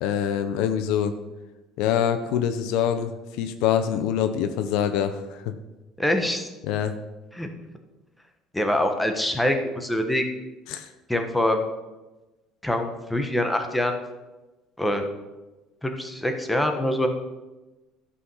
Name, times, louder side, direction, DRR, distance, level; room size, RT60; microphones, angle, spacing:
voice 1, 0.0-1.1 1.8-3.1 3.4-5.5 6.6-7.0 10.7-10.9, left 9 dB, 80° left, 9 dB, 0.7 m, -25 dB
voice 2, 6.0-6.5 7.3-7.5 8.5-10.3 11.1-11.6 12.6-14.0 14.8-15.1 15.8-17.1, left 1 dB, 5° left, 5 dB, 1.3 m, -24 dB
12.0 x 5.7 x 5.6 m, 1.1 s
cardioid pair, 110°, 0 cm